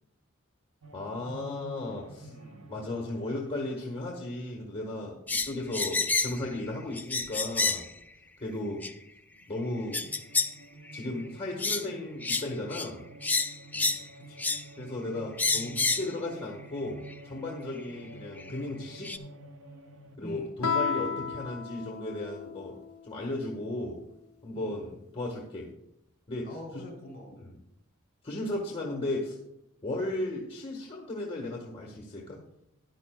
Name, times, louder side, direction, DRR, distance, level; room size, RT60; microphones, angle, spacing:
sound 1, 0.8-9.0 9.3-20.2, right 3 dB, 70° right, 0.8 m, -51 dB
voice 1, 0.9-2.3 2.7-7.8 8.4-8.8 9.5-10.0 10.9-13.0 13.7-13.9 14.8-19.1 20.2-24.0 24.4-25.7 26.3-26.5 27.4-27.5 28.2-29.4 29.8-32.4, left 2 dB, 25° left, -3 dB, 1.3 m, -35 dB
voice 2, 2.2-2.7 8.4-8.9 14.1-14.5 17.9-18.1 20.2-20.5 24.5-25.0 26.4-27.4 29.8-30.0, left 1 dB, 45° left, 1 dB, 2.9 m, -46 dB
sound 2, 5.3-6.4 6.9-7.9 8.8-8.9 9.9-10.5 10.9-11.1 11.6-11.8 12.2-12.5 12.7-12.9 13.2-14.0 14.4-14.6 15.4-16.1 17.1-17.2 18.4-18.5 19.0-19.2, left 4 dB, 10° left, 0.3 m, -29 dB
Guitar, 20.6-23.1, left 5 dB, 85° left, 0.6 m, -33 dB
13.5 x 10.5 x 2.2 m, 0.82 s
head